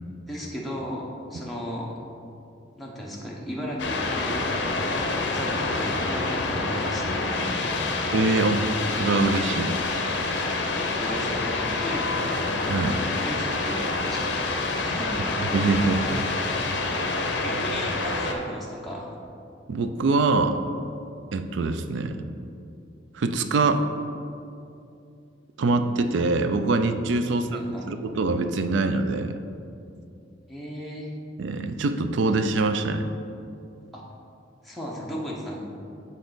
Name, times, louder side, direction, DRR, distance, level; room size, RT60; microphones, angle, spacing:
voice 1, 0.3-1.9 2.8-4.6 4.9-8.1 10.1-12.4 12.9-14.3 14.7-15.8 16.9-19.2 27.3-27.8 30.5-31.1 33.9-34.0 34.6-35.6, equal, ahead, -5 dB, 0.7 m, -36 dB
sound 1, 3.8-18.3, left 3 dB, 60° left, 0.6 m, -27 dB
voice 2, 8.1-8.6 8.9-9.8 12.7-13.0 15.5-16.3 19.7-20.6 21.3-22.2 23.1-23.8 25.6-29.4 31.4-33.1, right 3 dB, 70° right, 9 dB, 0.4 m, -24 dB
7.0 x 4.2 x 3.9 m, 2.6 s
head